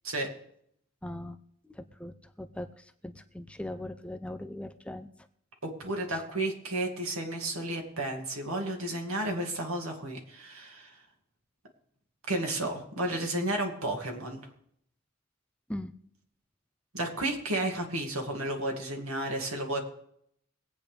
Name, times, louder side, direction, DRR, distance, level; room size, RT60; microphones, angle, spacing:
voice 1, 1.0-1.4 1.6-5.1 6.1-6.2 15.7-15.9, left 1 dB, 5° left, 9 dB, 0.5 m, -40 dB
voice 2, 5.6-11.0 12.3-14.4 16.9-19.8, right 1 dB, 85° right, 2 dB, 2.4 m, -32 dB
23.0 x 8.7 x 3.4 m, 0.70 s
head